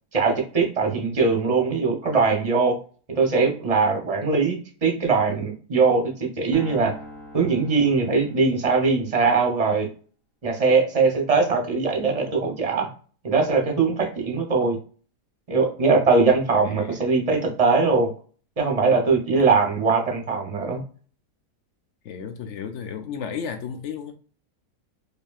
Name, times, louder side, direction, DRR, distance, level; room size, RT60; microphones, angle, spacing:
voice 1, 0.1-2.8 3.2-6.9 7.3-9.9 10.4-12.9 13.2-14.8 15.5-18.1 18.6-20.8, right 4 dB, 30° right, 2 dB, 0.7 m, -21 dB
sound 1, 6.5-8.9, left 1 dB, 25° left, 1.1 m, -42 dB
voice 2, 16.5-17.0 19.3-19.6 22.0-24.1, left 7 dB, 80° left, 6 dB, 0.6 m, -34 dB
5.1 x 2.5 x 2.3 m, 0.40 s
omnidirectional pair, 1.8 m